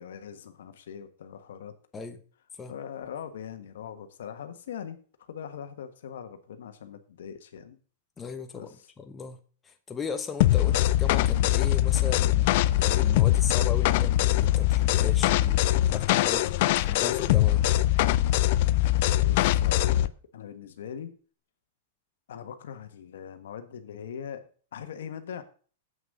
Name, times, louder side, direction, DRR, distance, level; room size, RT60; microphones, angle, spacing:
voice 1, 0.0-1.7 2.7-5.0 5.3-7.8 8.5-8.9 10.6-10.8 19.2-21.1 22.3-24.4 24.7-25.4, left 8 dB, 80° left, 1.4 m, -41 dB
voice 2, 8.2-8.7 9.0-9.4 9.6-12.5 12.8-17.7, left 5 dB, 15° left, 1.1 m, -37 dB
sound 1, 10.4-20.1, left 15 dB, 55° left, 0.5 m, -22 dB
8.1 x 6.2 x 6.6 m
hypercardioid pair, 135°, 0 cm